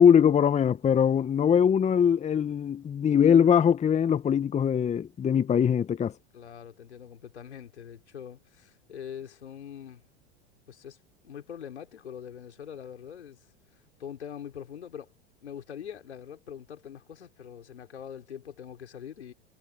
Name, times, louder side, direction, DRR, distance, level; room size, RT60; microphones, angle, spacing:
voice 1, 0.0-6.1, left 8 dB, 20° left, 1.1 m, -22 dB
voice 2, 6.3-10.0 10.7-11.0 11.2-15.1 15.4-19.3, left 8 dB, 85° left, 4.6 m, -43 dB
hypercardioid pair, 95°, 33 cm